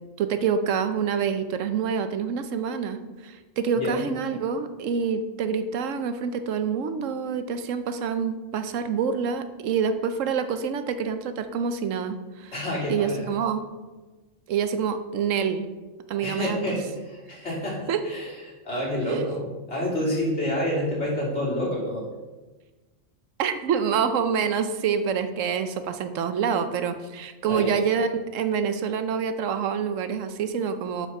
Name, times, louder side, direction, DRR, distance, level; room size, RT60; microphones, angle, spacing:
voice 1, 0.2-12.5 12.9-13.6 14.5-15.7 16.1-16.7 17.9-18.0 19.1-19.3 23.4-31.1, right 6 dB, 80° right, 10 dB, 1.1 m, -27 dB
voice 2, 12.5-13.2 16.2-18.3 18.6-22.0 27.4-27.7, left 1 dB, 60° left, -5 dB, 3.2 m, -28 dB
7.1 x 5.8 x 5.8 m, 1.2 s
omnidirectional pair, 1.3 m